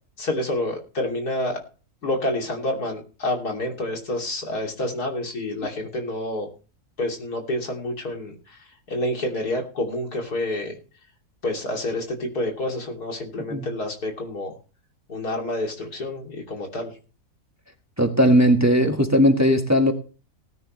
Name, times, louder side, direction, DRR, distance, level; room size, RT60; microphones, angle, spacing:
voice 1, 0.2-1.6 2.0-6.5 7.0-8.6 8.9-10.8 11.4-14.6 15.1-16.9, left 1 dB, 85° left, 1 dB, 3.4 m, -28 dB
voice 2, 18.0-19.9, equal, 10° right, 4 dB, 1.6 m, -18 dB
19.0 x 9.8 x 3.2 m, 0.36 s
omnidirectional pair, 1.6 m